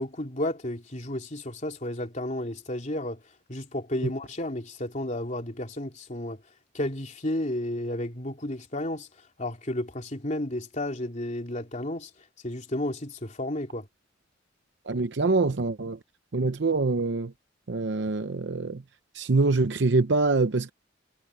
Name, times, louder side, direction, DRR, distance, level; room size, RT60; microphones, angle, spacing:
voice 1, 0.0-3.2 3.5-6.4 6.7-9.1 9.4-12.1 12.4-13.9, left 1 dB, 40° left, 3.2 m, -32 dB
voice 2, 14.9-16.0 16.3-17.3 17.7-18.8 19.1-20.7, right 3 dB, 65° right, 0.7 m, -25 dB
head